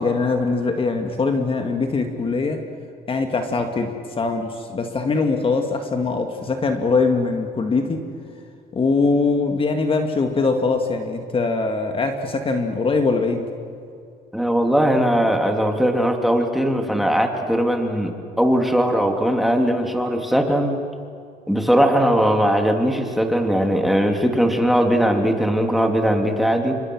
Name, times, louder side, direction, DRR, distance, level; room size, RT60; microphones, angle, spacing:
voice 1, 0.0-2.6 3.1-8.0 8.7-13.5, left 4 dB, 30° left, 5 dB, 2.3 m, -22 dB
voice 2, 14.3-18.1 18.4-20.8 21.5-26.8, equal, ahead, 3 dB, 2.8 m, -19 dB
29.0 x 25.5 x 6.4 m, 2.4 s
cardioid pair, 110°, 17 cm